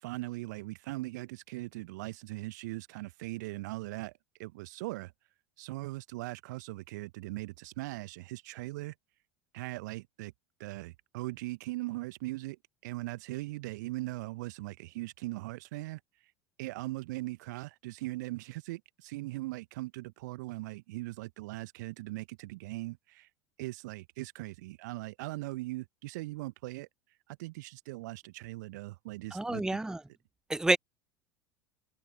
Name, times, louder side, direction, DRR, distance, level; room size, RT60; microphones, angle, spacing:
voice 1, 0.0-4.1 4.4-5.1 5.6-8.9 9.5-10.3 10.6-16.0 16.6-23.3 23.6-26.9 27.3-29.8, right 20 dB, 60° right, 1.0 m, -40 dB
voice 2, 29.3-30.0 30.5-30.8, right 2 dB, 5° right, 0.7 m, -28 dB
figure-of-eight pair, 75°, 11 cm